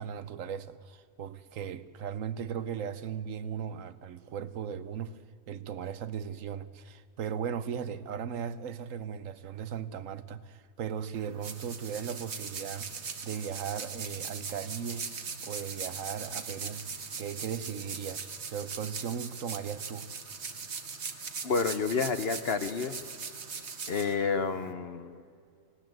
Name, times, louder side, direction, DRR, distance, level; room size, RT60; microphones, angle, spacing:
voice 1, 0.0-5.2 5.5-15.1 15.4-16.8 17.2-20.1, right 8 dB, 65° right, 1.1 m, -37 dB
sound 1, 11.1-24.7, right 5 dB, 50° right, 1.5 m, -40 dB
voice 2, 21.4-22.9 23.9-25.2, left 5 dB, 50° left, 0.9 m, -30 dB
19.5 x 17.5 x 7.8 m
omnidirectional pair, 1.6 m